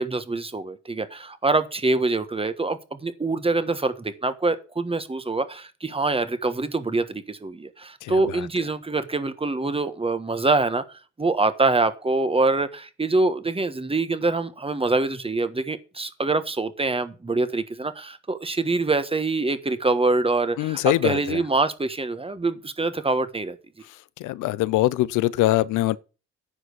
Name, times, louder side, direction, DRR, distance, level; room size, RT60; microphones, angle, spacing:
voice 1, 0.0-23.6, right 3 dB, 20° right, 1.4 m, -25 dB
voice 2, 8.0-8.5 20.6-21.4 24.2-26.0, left 16 dB, 85° left, 0.6 m, -23 dB
9.9 x 5.0 x 8.1 m
cardioid pair, 90°, 30 cm